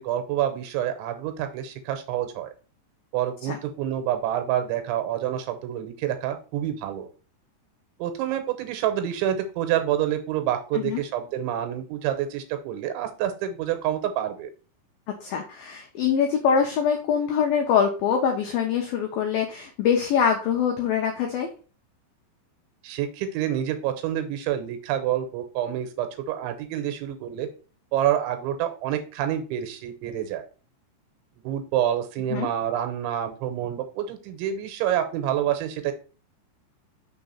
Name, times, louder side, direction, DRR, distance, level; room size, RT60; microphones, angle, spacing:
voice 1, 0.0-2.5 3.1-7.1 8.0-14.5 22.8-27.5 27.9-30.5 31.4-35.9, right 11 dB, 85° right, 7 dB, 3.2 m, -27 dB
voice 2, 15.2-21.5 32.3-32.5, left 7 dB, 85° left, 2 dB, 2.1 m, -24 dB
6.7 x 3.4 x 5.6 m, 0.36 s
omnidirectional pair, 5.4 m